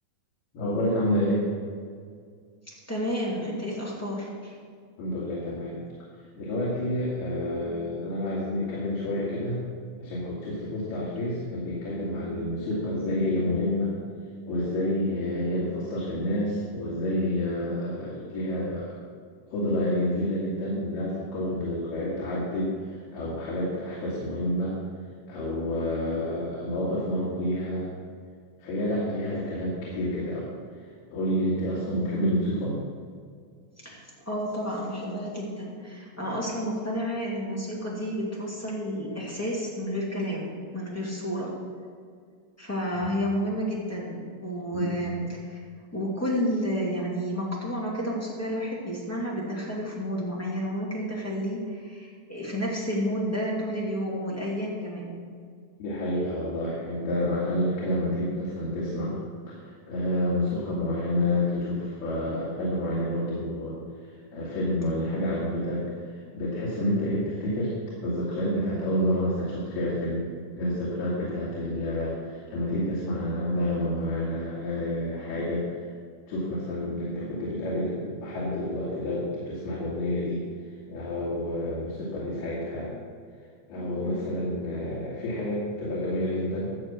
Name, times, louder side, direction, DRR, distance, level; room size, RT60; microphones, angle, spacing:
voice 1, 0.5-1.5 5.0-5.8 6.4-9.6 10.0-13.9 14.5-19.0 19.5-24.8 25.3-27.9 28.6-30.5 31.1-32.8 42.9-43.1 44.7-44.9 55.8-59.1 59.5-59.6 59.9-67.7 68.0-75.6 76.3-80.5 80.9-83.0 83.7-86.7, left 1 dB, 85° left, -7 dB, 4.2 m, -29 dB
voice 2, 2.9-4.6 33.8-41.6 42.6-45.6 45.9-55.1 84.0-84.2, equal, 5° left, -5 dB, 1.4 m, -31 dB
13.0 x 7.3 x 6.2 m, 2.1 s
omnidirectional pair, 4.4 m